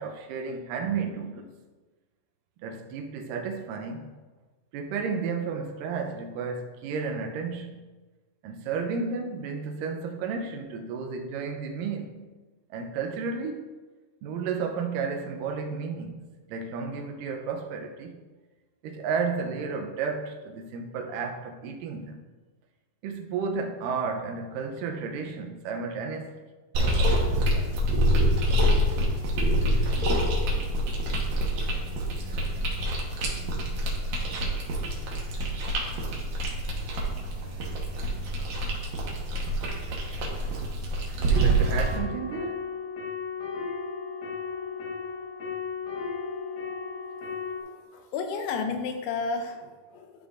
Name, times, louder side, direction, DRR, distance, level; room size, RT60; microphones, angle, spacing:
voice 1, 0.0-1.5 2.6-4.1 4.7-7.8 8.4-12.3 12.7-13.7 14.2-18.2 18.8-22.2 23.0-26.4 41.1-42.7, right 5 dB, 85° right, 3 dB, 1.9 m, -32 dB
sound 1, 26.7-42.0, equal, 65° right, 2.5 m, -26 dB
sound 2, 41.3-47.6, left 5 dB, 70° left, 1.7 m, -35 dB
voice 2, 47.6-50.1, left 4 dB, 85° left, 5 dB, 2.7 m, -32 dB
12.0 x 5.2 x 2.5 m, 1.3 s
omnidirectional pair, 4.8 m